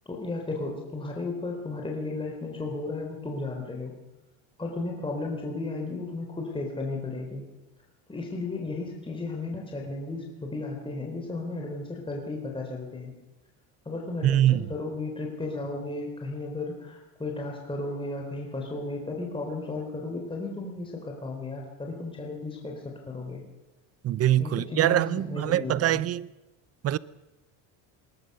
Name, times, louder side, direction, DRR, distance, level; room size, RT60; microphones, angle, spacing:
voice 1, 0.1-3.9 4.6-7.4 8.1-13.1 13.9-23.4 24.4-26.0, left 3 dB, 10° left, 3.8 m, -34 dB
voice 2, 14.2-14.7 24.0-26.3 26.8-27.0, right 12 dB, 30° right, 0.6 m, -23 dB
20.5 x 19.0 x 6.7 m
supercardioid pair, 120°, 47 cm